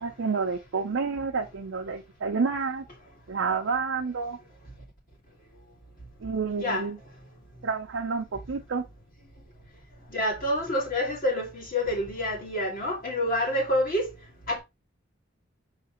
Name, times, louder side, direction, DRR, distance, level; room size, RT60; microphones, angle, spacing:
voice 1, 0.0-2.8 3.3-4.4 6.2-7.0 7.6-8.8, right 5 dB, 75° right, 0.5 m, -29 dB
voice 2, 10.1-14.1 14.5-14.6, left 1 dB, 45° left, 1.8 m, -27 dB
5.7 x 3.2 x 2.9 m
head